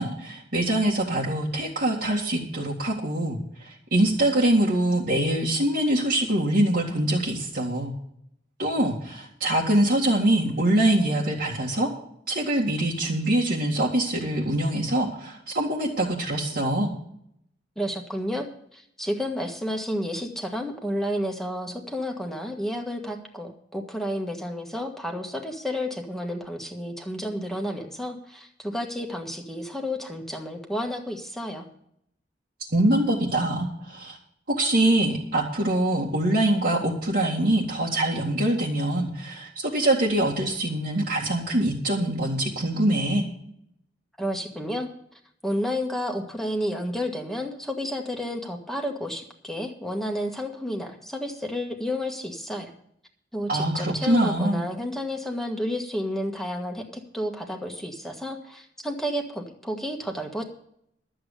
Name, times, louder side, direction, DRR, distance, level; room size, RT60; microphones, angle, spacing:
voice 1, 0.0-7.9 8.6-11.9 12.3-16.9 32.7-34.2 34.5-43.2 53.5-54.6, right 1 dB, 60° right, -5 dB, 2.1 m, -24 dB
voice 2, 17.8-31.7 44.2-44.9 45.4-52.7 53.3-56.8 57.1-60.4, equal, ahead, 2 dB, 1.6 m, -31 dB
12.0 x 7.9 x 6.7 m, 0.70 s
head